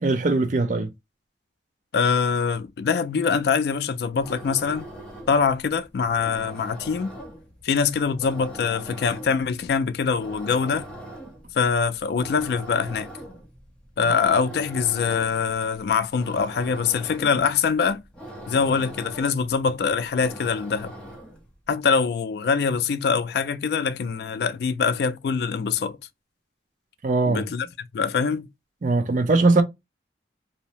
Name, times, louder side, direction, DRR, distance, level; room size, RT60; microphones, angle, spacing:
voice 1, 0.0-0.9 27.0-27.5 28.8-29.6, right 3 dB, 45° right, 0.4 m, -20 dB
voice 2, 1.9-4.9 5.3-7.1 7.6-10.9 11.5-13.1 14.0-18.0 18.5-20.9 21.7-26.0 27.3-27.7 27.9-28.5, left 5 dB, 60° left, 0.3 m, -24 dB
sound 1, 4.1-21.5, right 1 dB, 5° left, 0.6 m, -42 dB
2.7 x 2.0 x 2.8 m
head